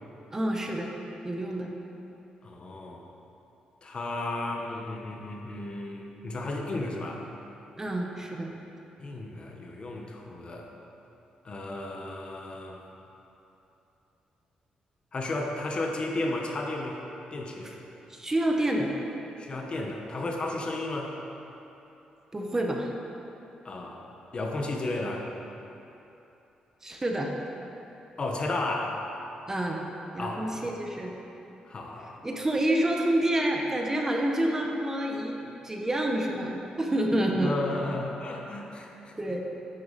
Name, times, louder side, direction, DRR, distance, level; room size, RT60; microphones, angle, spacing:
voice 1, 0.3-0.9 1.2-1.7 7.8-8.5 17.6-17.7 18.1-18.9 22.3-22.9 26.8-27.3 29.5-29.8 30.1-31.1 32.2-37.5 39.2-39.4, right 1 dB, 20° right, 1 dB, 1.1 m, -28 dB
voice 2, 2.4-3.0 3.8-7.2 9.0-10.7 11.4-12.8 15.1-17.0 17.3-17.7 19.4-21.1 23.6-24.0 24.3-25.3 28.2-29.0 30.2-30.8 31.7-32.2 37.4-39.1, left 2 dB, 40° left, 1 dB, 1.1 m, -33 dB
9.7 x 8.6 x 4.2 m, 2.9 s
cardioid pair, 90°, 3 cm